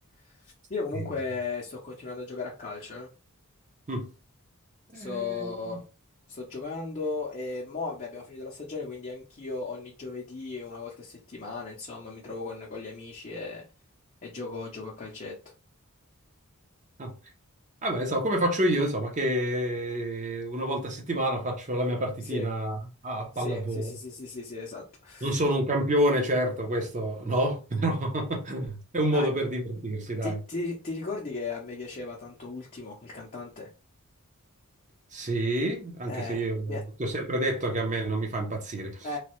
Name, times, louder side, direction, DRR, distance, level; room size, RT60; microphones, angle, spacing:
voice 1, 0.2-3.1 4.9-5.8 6.3-13.6 14.2-15.4 22.2-22.5 23.3-25.4 29.1-29.3 30.2-33.7 36.1-36.4 36.7-36.8 39.0-39.2, left 3 dB, 35° left, 0.6 m, -36 dB
voice 2, 4.9-5.8 17.0-17.1 17.8-22.8 23.0-23.9 25.2-30.3 35.1-39.1, right 1 dB, 35° right, 0.8 m, -28 dB
3.1 x 2.3 x 3.0 m
head